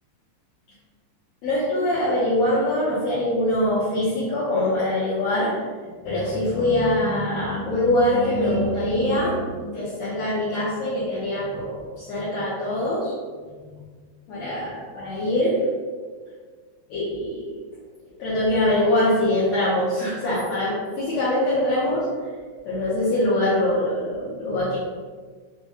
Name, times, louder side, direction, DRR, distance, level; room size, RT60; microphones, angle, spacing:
voice 1, 1.4-5.6 6.0-13.1 13.7-13.8 14.3-15.6 16.9-17.6 18.2-22.3 22.6-24.8, left 1 dB, 75° left, -10 dB, 1.6 m, -23 dB
6.0 x 2.2 x 2.8 m, 1.5 s
omnidirectional pair, 4.2 m